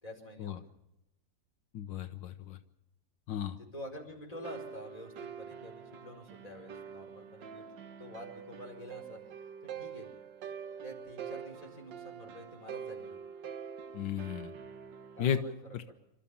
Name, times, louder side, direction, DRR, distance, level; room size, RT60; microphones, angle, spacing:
voice 1, 0.0-0.7 3.5-7.7 8.0-10.1 10.8-13.2 15.2-15.9, left 1 dB, 20° left, 1 dB, 4.9 m, -48 dB
voice 2, 1.7-2.6 3.3-3.6 13.9-14.5 15.2-15.4 15.7-15.8, left 9 dB, 85° left, 9 dB, 1.7 m, -34 dB
sound 1, 4.3-15.3, right 7 dB, 85° right, 1.7 m, -45 dB
27.5 x 13.5 x 7.1 m, 0.88 s
omnidirectional pair, 1.9 m